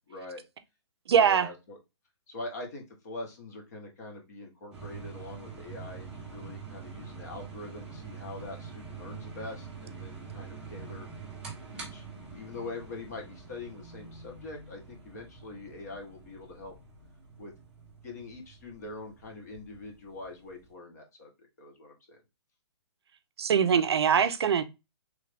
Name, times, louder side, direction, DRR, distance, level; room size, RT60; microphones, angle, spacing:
voice 1, 0.1-0.4 1.2-1.8 2.3-11.1 11.7-12.0 12.3-16.7 17.4-17.5 18.0-22.2, left 2 dB, 35° left, 0.9 m, -43 dB
voice 2, 1.1-1.5 23.4-24.6, right 7 dB, 65° right, 0.4 m, -22 dB
sound 1, 4.7-20.7, right 5 dB, 5° right, 0.5 m, -45 dB
3.1 x 2.5 x 3.2 m
hypercardioid pair, 175°, 15 cm